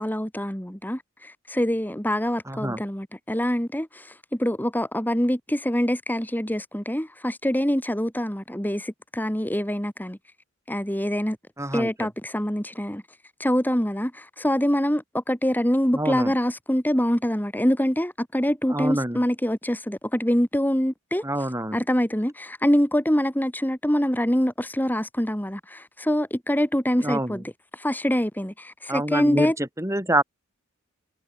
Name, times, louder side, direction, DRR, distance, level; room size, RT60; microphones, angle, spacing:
voice 1, 0.0-10.2 10.7-11.4 11.7-13.0 13.4-21.2 21.7-27.4 27.7-29.6, equal, 10° left, 3.9 m, -25 dB
voice 2, 2.5-2.8 11.6-12.1 15.9-16.3 18.7-19.2 21.2-21.8 27.0-27.4 28.9-30.2, right 1 dB, 15° right, 6.0 m, -26 dB
head